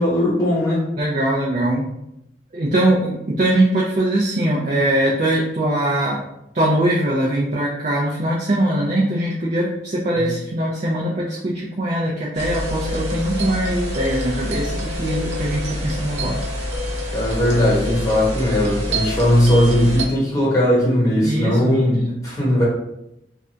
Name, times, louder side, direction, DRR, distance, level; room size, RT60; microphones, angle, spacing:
voice 1, 0.0-0.8 10.2-10.3 17.1-22.6, left 1 dB, 20° left, -6 dB, 1.1 m, -18 dB
voice 2, 1.0-1.9 2.5-6.2 6.5-16.4 21.2-22.3, right 1 dB, 40° right, -4 dB, 0.4 m, -21 dB
sound 1, 12.3-20.0, left 1 dB, 85° right, 0.9 m, -26 dB
2.6 x 2.4 x 3.3 m, 0.84 s
head